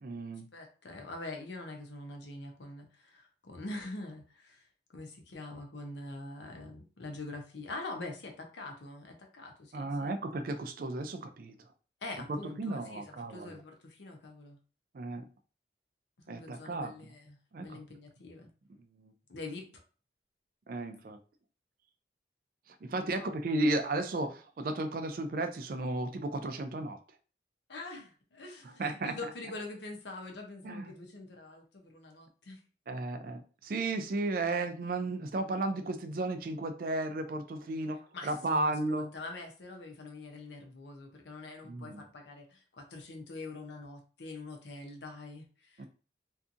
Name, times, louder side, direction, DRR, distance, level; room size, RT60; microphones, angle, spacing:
voice 1, 0.0-0.5 9.7-11.5 12.3-13.6 14.9-15.2 16.3-16.9 17.5-17.7 19.0-19.1 20.7-21.2 22.8-27.0 28.8-29.2 30.6-30.9 32.9-39.1 41.6-42.0 45.8-45.9, right 2 dB, 50° right, 7 dB, 0.4 m, -34 dB
voice 2, 0.5-10.2 12.0-14.6 16.2-18.5 19.3-19.7 23.1-23.5 27.7-32.6 38.1-45.8, left 2 dB, 75° left, 3 dB, 0.7 m, -44 dB
2.7 x 2.4 x 2.5 m, 0.38 s
head